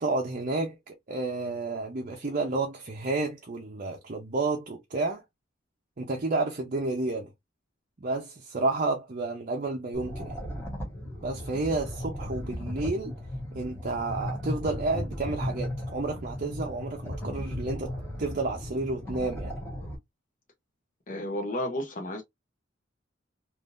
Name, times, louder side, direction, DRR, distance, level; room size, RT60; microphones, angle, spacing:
voice 1, 0.0-5.2 6.0-7.3 8.0-10.4 11.2-13.2 13.5-17.9 18.2-19.5, right 3 dB, 45° right, 0.6 m, -31 dB
sound 1, 9.9-20.0, left 1 dB, 10° left, 1.2 m, -36 dB
voice 2, 21.1-22.2, left 1 dB, 45° left, 0.8 m, -32 dB
3.5 x 2.6 x 2.5 m
head